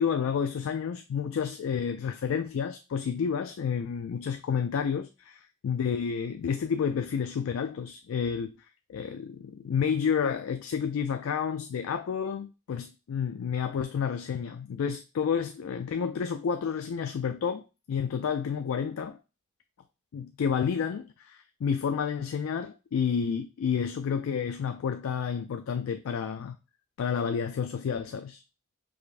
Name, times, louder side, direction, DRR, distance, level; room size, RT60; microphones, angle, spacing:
voice 1, 0.0-8.5 8.9-19.2 20.1-26.6 27.0-28.4, left 7 dB, 90° left, 0.3 m, -30 dB
4.8 x 3.4 x 2.5 m
head